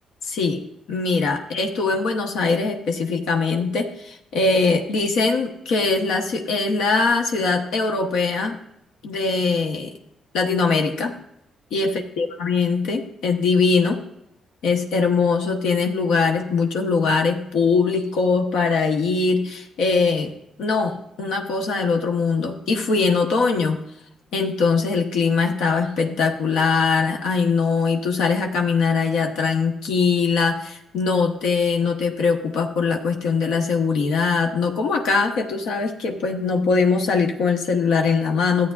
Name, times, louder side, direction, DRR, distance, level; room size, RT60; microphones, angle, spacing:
voice 1, 0.2-0.6 0.9-8.6 9.0-9.9 10.3-11.1 11.7-14.0 14.6-20.3 20.6-23.8 24.3-38.7, left 4 dB, 85° left, 3 dB, 1.0 m, -21 dB
13.5 x 8.4 x 2.4 m, 0.79 s
cardioid pair, 90°, 0 cm